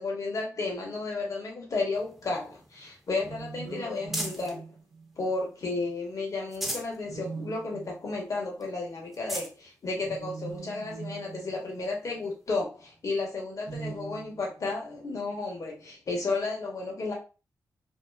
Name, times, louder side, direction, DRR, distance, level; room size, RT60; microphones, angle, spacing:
voice 1, 0.0-4.6 5.2-17.1, left 3 dB, 55° left, -1 dB, 1.2 m, -33 dB
sound 1, 1.9-4.6 5.1-5.9 6.3-7.0 7.4-7.5 7.9-8.0 8.6-8.7 9.1-9.6 10.4-10.5 12.2-12.3, equal, 5° right, 0.7 m, -38 dB
sound 2, 3.2-5.4 7.0-8.2 9.9-12.2 13.6-14.7, right 4 dB, 85° right, 0.6 m, -41 dB
2.8 x 2.3 x 2.2 m, 0.32 s
cardioid pair, 60°, 7 cm